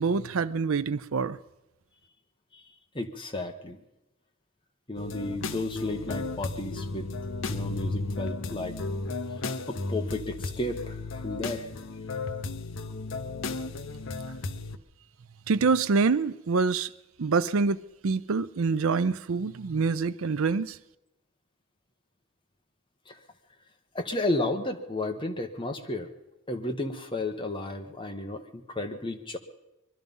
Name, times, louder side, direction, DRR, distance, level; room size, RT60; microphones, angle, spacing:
voice 1, 0.0-1.4 15.5-16.9 17.2-20.8, right 4 dB, 70° right, 0.5 m, -26 dB
voice 2, 2.9-3.8 4.9-7.1 7.5-8.7 9.7-11.7 23.1-23.2 23.9-26.1 26.5-29.4, left 2 dB, 20° left, 1.1 m, -33 dB
sound 1, 5.0-14.8, left 3 dB, 60° left, 0.7 m, -34 dB
22.0 x 12.0 x 5.4 m
head